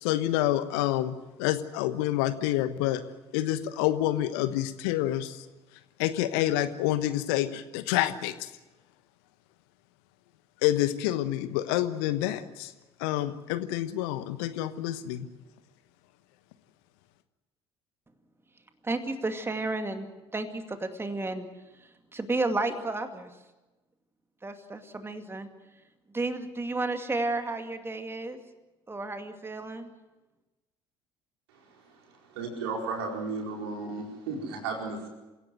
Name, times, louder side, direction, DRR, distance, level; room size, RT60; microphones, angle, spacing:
voice 1, 0.0-3.0 3.3-5.4 6.0-8.5 10.6-12.7 13.0-15.3, left 13 dB, 65° left, 13 dB, 1.2 m, -28 dB
voice 2, 18.8-20.1 20.3-21.5 22.1-23.3 24.4-25.5 26.1-28.4 28.9-29.9, right 2 dB, 15° right, 7 dB, 2.3 m, -32 dB
voice 3, 32.4-35.1, right 4 dB, 70° right, 1 dB, 4.8 m, -34 dB
28.0 x 16.5 x 7.7 m, 1.1 s
figure-of-eight pair, 55°, 14 cm